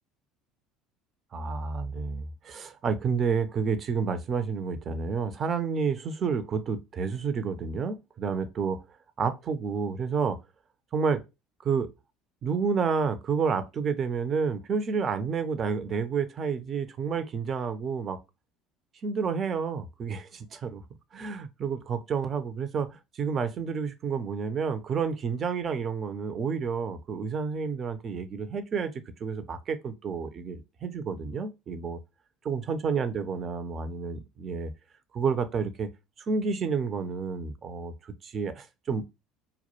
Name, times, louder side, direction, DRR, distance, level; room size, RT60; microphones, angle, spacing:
voice 1, 1.3-8.8 9.2-10.4 10.9-11.2 11.6-11.9 12.4-18.2 19.0-20.8 21.1-28.9 29.2-32.0 32.5-34.7 35.1-35.9 36.2-39.1, right 5 dB, 40° right, 0.4 m, -30 dB
2.2 x 2.0 x 2.9 m
hypercardioid pair, 65°, 0 cm